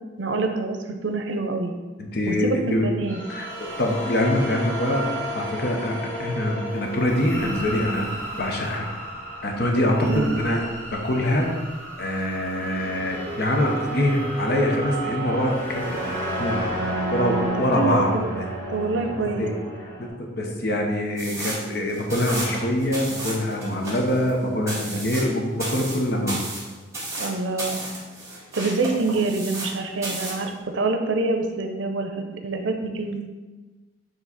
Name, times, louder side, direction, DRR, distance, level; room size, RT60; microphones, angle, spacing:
voice 1, 0.2-1.7 2.3-3.2 10.0-10.3 17.5-18.4 18.7-19.5 24.9-25.0 27.2-27.8 28.5-33.3, right 3 dB, 85° right, 5 dB, 0.6 m, -26 dB
voice 2, 2.0-2.9 3.3-8.1 8.4-8.9 9.4-11.5 12.0-15.9 16.4-16.6 17.1-18.5 19.1-19.6 20.0-26.4, left 1 dB, 60° left, 1 dB, 1.0 m, -24 dB
sound 1, 3.1-20.1, right 1 dB, 10° left, 1.6 m, -32 dB
sound 2, 21.2-29.8 30.0-30.5, right 2 dB, 15° right, 1.8 m, -33 dB
7.3 x 3.2 x 4.1 m, 1.3 s
head